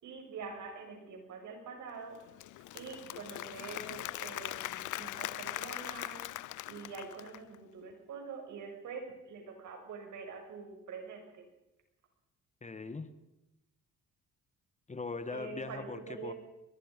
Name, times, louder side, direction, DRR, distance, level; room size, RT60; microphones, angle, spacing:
voice 1, 0.0-2.2 2.7-6.2 6.7-11.4 15.3-16.3, right 5 dB, 75° right, 3 dB, 6.3 m, -45 dB
Applause / Crowd, 2.2-7.6, left 16 dB, 80° left, 0.6 m, -41 dB
voice 2, 12.6-13.2 14.9-16.3, left 3 dB, 25° left, 11 dB, 1.5 m, -40 dB
22.5 x 22.0 x 5.3 m, 0.93 s
cardioid pair, 90°, 30 cm